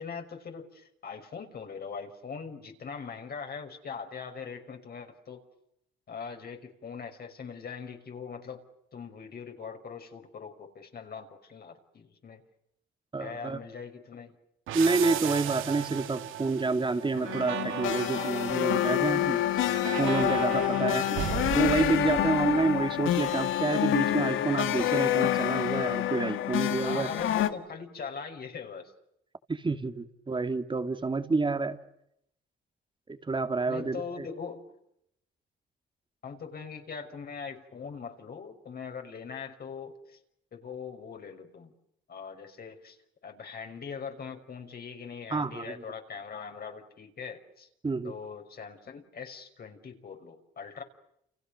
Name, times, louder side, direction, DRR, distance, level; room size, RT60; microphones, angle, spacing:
voice 1, 0.0-5.4 6.1-8.6 8.9-12.4 13.2-14.4 20.7-21.2 26.8-28.9 33.7-34.6 36.2-40.2 40.5-41.7 42.1-43.0 43.2-47.7 48.0-50.8, left 6 dB, 50° left, 4 dB, 5.7 m, -41 dB
voice 2, 13.1-13.6 14.7-19.7 20.0-21.3 21.5-27.1 29.5-31.8 33.1-34.3 45.3-45.7 47.8-48.1, right 3 dB, 25° right, 8 dB, 2.5 m, -28 dB
sound 1, 14.7-23.1, right 11 dB, 85° right, 2.4 m, -36 dB
sound 2, 17.1-27.5, left 12 dB, 80° left, 2.1 m, -27 dB
30.0 x 29.5 x 6.6 m, 0.78 s
cardioid pair, 90°, 20 cm